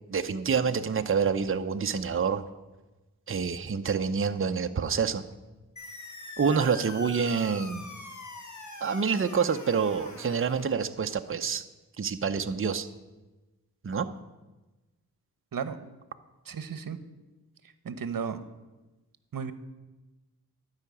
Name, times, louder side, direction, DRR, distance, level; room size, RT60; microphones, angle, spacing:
voice 1, 0.1-2.4 3.3-5.2 6.4-7.9 8.8-11.6 12.0-12.9 13.8-14.1, right 6 dB, 35° right, 8 dB, 0.7 m, -27 dB
sound 1, 5.8-10.8, left 2 dB, 50° left, 1.8 m, -43 dB
voice 2, 16.5-17.0 17.8-18.4 19.3-19.5, right 6 dB, 60° right, 12 dB, 1.0 m, -33 dB
12.0 x 5.8 x 9.1 m, 1.1 s
wide cardioid pair, 75°, 37 cm